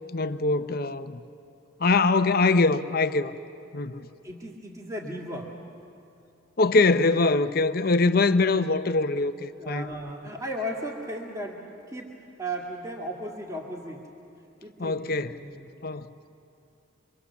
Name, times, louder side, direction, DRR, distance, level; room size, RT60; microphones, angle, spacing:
voice 1, 0.1-1.2 1.8-3.3 3.7-4.1 6.6-9.9 14.8-15.3 15.8-16.1, left 3 dB, 50° left, 0.7 m, -23 dB
voice 2, 4.1-5.5 9.6-14.1 14.6-15.8, right 1 dB, 15° right, 2.3 m, -36 dB
25.5 x 24.5 x 7.1 m
head